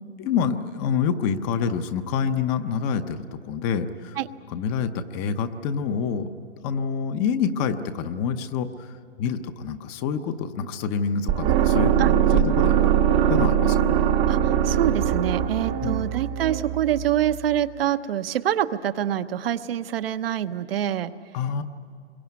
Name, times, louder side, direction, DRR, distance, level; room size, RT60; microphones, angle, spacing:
voice 1, 0.2-4.2 4.5-6.3 6.6-8.9 9.2-12.9 13.3-13.9 15.8-16.1 21.3-21.6, left 6 dB, 25° left, 9 dB, 0.9 m, -27 dB
sound 1, 11.3-17.3, right 10 dB, 25° right, 0.9 m, -21 dB
voice 2, 14.3-21.1, right 11 dB, 60° right, 10 dB, 1.0 m, -26 dB
27.0 x 22.5 x 9.5 m, 2.2 s
hypercardioid pair, 145°, 34 cm